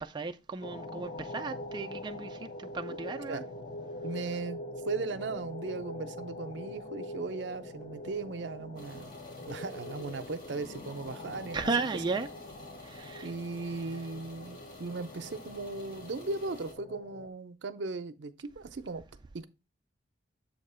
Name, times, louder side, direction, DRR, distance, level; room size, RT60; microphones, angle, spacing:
voice 1, 0.0-3.4 11.5-12.3 12.8-13.3, right 4 dB, 25° right, 0.3 m, -35 dB
sound 1, 0.6-17.3, left 2 dB, 35° left, 0.7 m, -43 dB
voice 2, 4.0-4.6 4.8-9.1 9.4-11.9 13.2-19.0 19.3-19.5, right 3 dB, 70° right, 0.6 m, -37 dB
sound 2, 8.8-16.7, left 1 dB, 55° left, 2.4 m, -52 dB
7.3 x 2.9 x 5.4 m
head